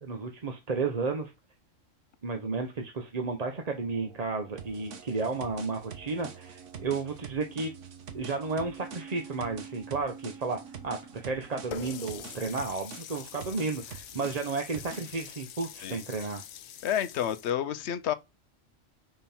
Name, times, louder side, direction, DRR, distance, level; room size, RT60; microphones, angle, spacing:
voice 1, 0.0-1.3 2.2-7.7 8.1-16.4, right 4 dB, 35° right, 0.9 m, -33 dB
sound 1, 3.3-12.6, right 7 dB, 90° right, 1.4 m, -49 dB
sound 2, 4.6-15.2, right 6 dB, 70° right, 1.3 m, -46 dB
Water tap faucet, 11.7-17.5, left 10 dB, 85° left, 1.1 m, -44 dB
voice 2, 16.8-18.1, left 10 dB, 65° left, 0.9 m, -30 dB
5.6 x 5.3 x 4.4 m
omnidirectional pair, 1.3 m